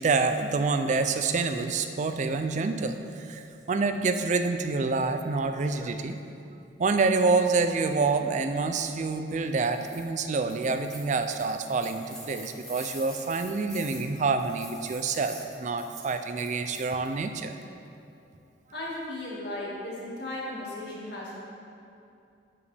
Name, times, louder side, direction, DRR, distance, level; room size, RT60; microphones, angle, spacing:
voice 1, 0.0-6.2 6.8-17.6, right 4 dB, 40° right, 8 dB, 0.4 m, -27 dB
sound 1, 9.5-10.0 10.4-17.1, equal, 5° left, 1.0 m, -46 dB
voice 2, 18.7-21.3, left 1 dB, 60° left, -6 dB, 1.8 m, -36 dB
11.5 x 5.1 x 3.4 m, 2.7 s
head